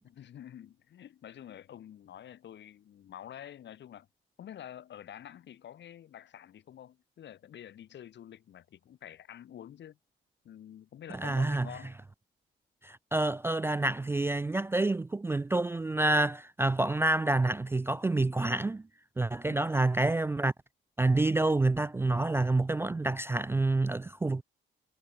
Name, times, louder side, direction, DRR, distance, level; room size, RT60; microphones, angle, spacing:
voice 1, 0.0-4.1 4.4-10.0 10.4-12.0 19.4-19.7, left 10 dB, 65° left, 1.8 m, -48 dB
voice 2, 11.2-11.7 12.8-18.8 19.2-20.5 21.0-24.4, right 2 dB, 10° right, 0.3 m, -28 dB
cardioid pair, 90°, 20 cm